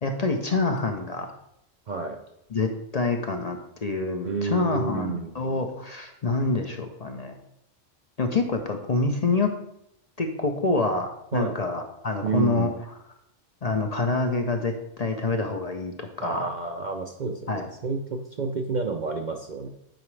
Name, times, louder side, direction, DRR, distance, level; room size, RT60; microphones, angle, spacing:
voice 1, 0.0-1.3 2.5-7.3 8.2-9.5 10.2-12.7 13.6-16.5 17.5-17.7, left 3 dB, 45° left, 4 dB, 0.6 m, -26 dB
voice 2, 4.2-5.3 11.3-11.6 12.2-12.7 16.2-19.7, right 4 dB, 55° right, 4 dB, 0.5 m, -30 dB
9.0 x 4.9 x 3.2 m, 0.80 s
omnidirectional pair, 1.3 m